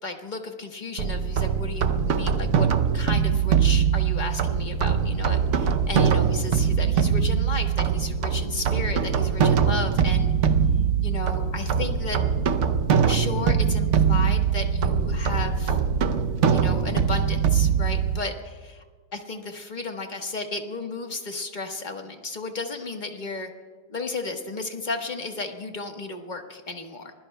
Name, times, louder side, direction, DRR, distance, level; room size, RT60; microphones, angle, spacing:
voice 1, 0.0-2.7 2.9-10.3 11.0-12.2 13.0-15.8 16.5-18.8 19.1-23.5 23.9-27.1, left 3 dB, 30° left, 4 dB, 1.2 m, -33 dB
sound 1, 1.0-18.2, right 7 dB, 65° right, 0.7 m, -22 dB
24.5 x 21.5 x 2.2 m, 1.5 s
omnidirectional pair, 2.0 m